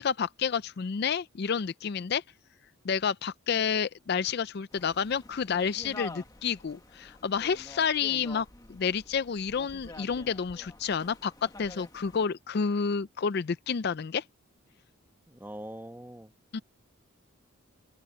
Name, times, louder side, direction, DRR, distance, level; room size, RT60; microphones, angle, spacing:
voice 1, 0.0-2.2 2.8-14.2 16.5-16.6, left 6 dB, 50° left, 0.4 m, -30 dB
sound 1, 4.7-12.2, left 2 dB, 15° left, 1.1 m, -48 dB
voice 2, 15.3-16.3, right 1 dB, 10° right, 1.2 m, -42 dB
head